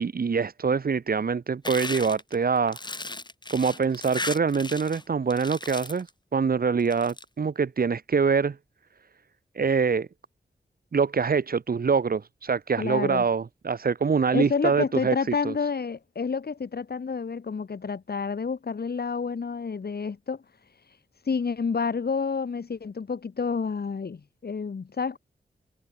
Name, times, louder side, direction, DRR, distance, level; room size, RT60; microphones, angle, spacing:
voice 1, 0.0-2.8 3.5-8.6 9.5-10.1 10.9-15.1 15.4-15.5, right 5 dB, 60° right, 1.3 m, -24 dB
sound 1, 1.6-5.0 5.3-6.1 6.8-7.2, left 2 dB, 25° left, 3.6 m, -36 dB
voice 2, 12.8-13.2 14.3-20.4 21.3-25.2, left 5 dB, 65° left, 2.8 m, -29 dB
wide cardioid pair, 70°, 17 cm